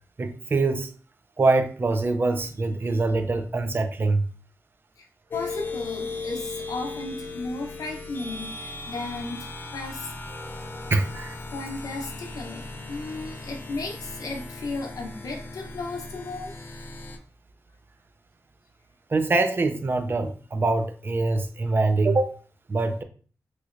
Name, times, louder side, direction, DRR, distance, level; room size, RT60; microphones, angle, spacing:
voice 1, 0.2-0.9 1.4-4.3 10.9-11.4 19.1-22.4 22.7-23.0, right 3 dB, 35° right, 0.4 m, -24 dB
voice 2, 5.3-10.9 11.5-16.6, left 3 dB, 75° left, 0.7 m, -35 dB
sound 1, 5.3-17.2, left 3 dB, 35° left, 0.5 m, -37 dB
3.1 x 2.9 x 2.5 m
wide cardioid pair, 90°, 6 cm